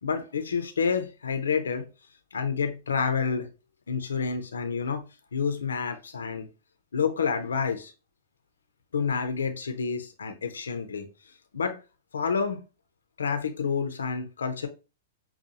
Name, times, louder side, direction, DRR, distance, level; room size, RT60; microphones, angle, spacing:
voice 1, 0.0-1.9 2.3-3.5 3.9-5.0 5.3-6.5 6.9-7.9 8.9-11.1 11.5-11.8 12.1-12.6 13.2-14.7, left 5 dB, 75° left, 7 dB, 0.5 m, -28 dB
5.5 x 2.2 x 2.7 m, 0.31 s
figure-of-eight pair, 105°, 0 cm